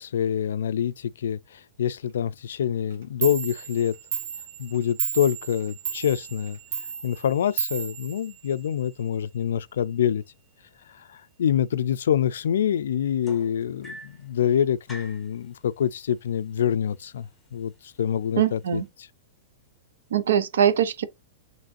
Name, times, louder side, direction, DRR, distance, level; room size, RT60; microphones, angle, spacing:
voice 1, 0.0-4.0 4.6-6.6 7.0-10.2 11.1-19.1, left 9 dB, 90° left, 0.3 m, -26 dB
Clock, 2.9-3.0 3.2-8.9, right 7 dB, 65° right, 1.6 m, -33 dB
sound 1, 13.2-14.3 14.9-15.3 16.3-16.4 16.8-17.2 17.9-18.0, equal, 5° left, 0.7 m, -43 dB
voice 2, 18.4-18.9 20.1-21.0, right 9 dB, 85° right, 0.7 m, -22 dB
5.2 x 3.1 x 2.5 m
supercardioid pair, 175°, 0 cm